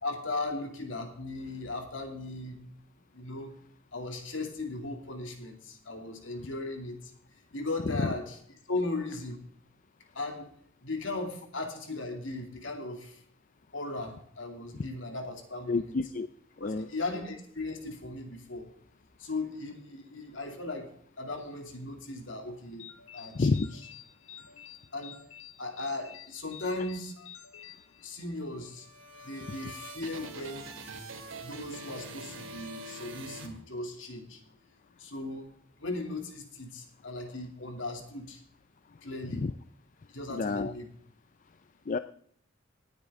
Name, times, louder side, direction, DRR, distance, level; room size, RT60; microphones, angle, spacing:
voice 1, 0.0-2.6 3.1-3.5 3.9-7.1 7.5-8.4 8.7-9.4 10.1-10.5 10.8-13.2 13.7-16.0 16.6-18.7 19.2-20.9 21.2-22.9 23.1-23.8 24.9-25.2 25.6-27.1 28.0-28.9 29.2-30.7 31.4-34.4 35.0-35.5 35.8-38.4 39.0-39.5 40.1-40.9, left 2 dB, 65° left, 4 dB, 2.6 m, -37 dB
voice 2, 15.7-16.3 16.6-16.9 23.3-23.7 39.3-39.5 40.3-40.7 41.9-42.0, left 3 dB, 40° left, 11 dB, 0.4 m, -29 dB
sound 1, 22.8-28.6, left 9 dB, 90° left, 1.4 m, -50 dB
sound 2, 28.6-34.2, right 2 dB, 70° right, 2.3 m, -44 dB
18.5 x 9.8 x 3.7 m, 0.62 s
head